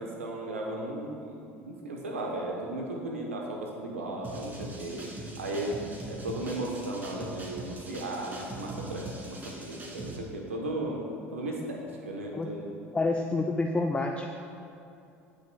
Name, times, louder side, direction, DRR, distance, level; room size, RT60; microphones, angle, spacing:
voice 1, 0.0-5.8 6.1-12.7, right 1 dB, 90° right, 0 dB, 1.0 m, -36 dB
sound 1, 4.2-10.2, right 1 dB, 25° right, 2.1 m, -41 dB
voice 2, 12.9-14.3, left 3 dB, 15° left, 3 dB, 0.5 m, -28 dB
17.5 x 6.3 x 2.3 m, 2.7 s
hypercardioid pair, 70°, 7 cm